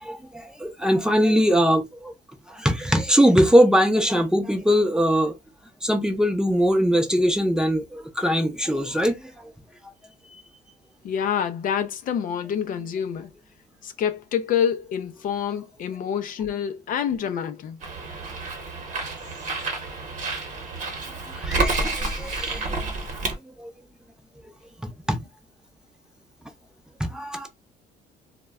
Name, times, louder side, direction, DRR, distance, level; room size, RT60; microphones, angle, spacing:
voice 1, 0.0-2.1 2.5-5.4 5.8-9.5 21.3-22.7 23.6-23.7 24.8-25.2 27.0-27.5, equal, 5° right, 0.5 m, -21 dB
voice 2, 11.0-13.3 13.8-17.8, left 8 dB, 55° left, 0.4 m, -27 dB
Bird, 17.8-23.4, right 3 dB, 45° right, 0.9 m, -29 dB
2.2 x 2.1 x 3.4 m
cardioid pair, 110°, 17 cm